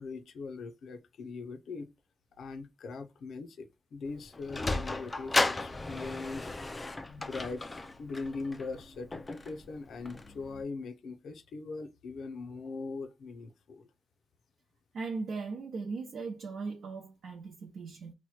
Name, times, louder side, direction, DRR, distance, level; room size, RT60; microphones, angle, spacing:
voice 1, 0.0-1.9 2.4-6.5 7.1-7.6 8.0-13.9, left 4 dB, 75° left, 0.5 m, -41 dB
Sliding door, 4.1-10.6, left 2 dB, 20° left, 0.3 m, -35 dB
voice 2, 14.9-18.1, right 4 dB, 70° right, 0.7 m, -38 dB
2.9 x 2.2 x 4.1 m
wide cardioid pair, 165°, 0 cm